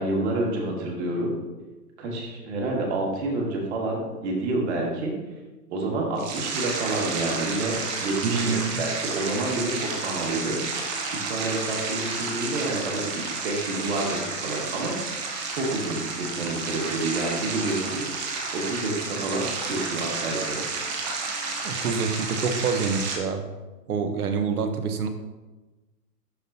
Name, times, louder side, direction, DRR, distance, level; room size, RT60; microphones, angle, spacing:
voice 1, 0.0-1.3 2.0-5.1 5.7-15.1 15.4-20.6, right 2 dB, 45° right, -2 dB, 1.9 m, -29 dB
sound 1, 6.2-23.2, right 4 dB, 25° right, 0.8 m, -31 dB
voice 2, 8.2-8.8 21.6-23.4 23.9-25.1, right 5 dB, 65° right, 8 dB, 1.0 m, -26 dB
11.0 x 4.0 x 2.7 m, 1.2 s
hypercardioid pair, 140°, 48 cm